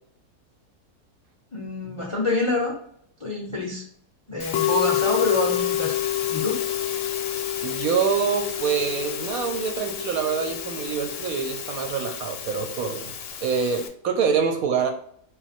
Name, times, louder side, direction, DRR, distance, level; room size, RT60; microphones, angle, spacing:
voice 1, 1.5-2.8 3.2-3.8 4.3-6.0 6.3-6.6, left 2 dB, 40° left, -1 dB, 0.4 m, -27 dB
Musical instrument, 4.4-13.9, left 11 dB, 70° left, 0.8 m, -28 dB
voice 2, 7.6-13.1 13.4-14.9, right 6 dB, 70° right, 4 dB, 0.9 m, -25 dB
4.1 x 2.2 x 4.1 m, 0.64 s
omnidirectional pair, 1.7 m